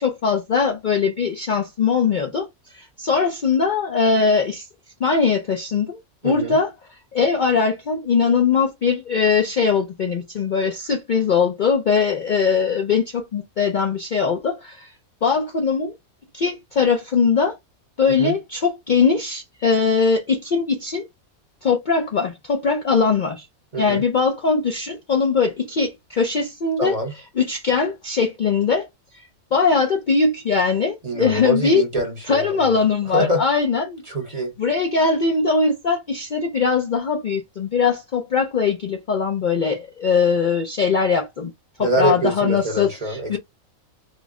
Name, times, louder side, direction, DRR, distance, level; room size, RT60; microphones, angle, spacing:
voice 1, 0.2-2.3 3.1-4.4 5.0-5.8 6.2-6.7 7.2-13.0 13.3-14.4 15.2-15.8 16.4-16.5 16.8-17.5 18.0-20.2 20.5-20.6 21.7-23.3 23.8-25.5 25.8-25.9 26.2-26.9 27.5-28.8 29.5-30.9 31.2-31.8 32.3-33.8 34.6-36.0 36.3-37.4 37.7-37.9 38.3-38.7 39.1-39.7 40.0-41.2 42.0-42.9 43.3-43.4, left 5 dB, 85° left, 0.4 m, -20 dB
voice 2, 6.2-6.6 18.1-18.4 23.7-24.0 26.8-27.1 31.0-33.4 34.1-34.5 41.8-43.4, right 1 dB, 35° right, 0.7 m, -24 dB
3.0 x 2.1 x 3.5 m
omnidirectional pair, 1.5 m